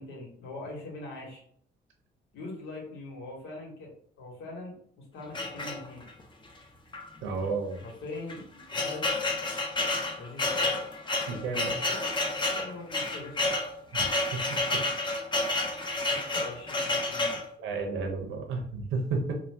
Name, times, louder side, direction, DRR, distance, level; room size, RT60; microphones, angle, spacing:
voice 1, 0.0-1.4 2.3-6.0 7.8-9.1 10.2-10.8 11.7-13.6 16.1-17.4, left 2 dB, 80° left, -2 dB, 1.3 m, -42 dB
sound 1, 5.3-6.2 6.9-7.1 7.3-7.4 8.1-17.5, left 2 dB, 25° left, 0.6 m, -30 dB
voice 2, 7.2-7.8 11.3-11.8 13.9-14.4 14.7-14.8 17.6-19.3, right 4 dB, 75° right, 2 dB, 0.7 m, -32 dB
2.6 x 2.3 x 3.3 m, 0.63 s
cardioid pair, 90°, 20 cm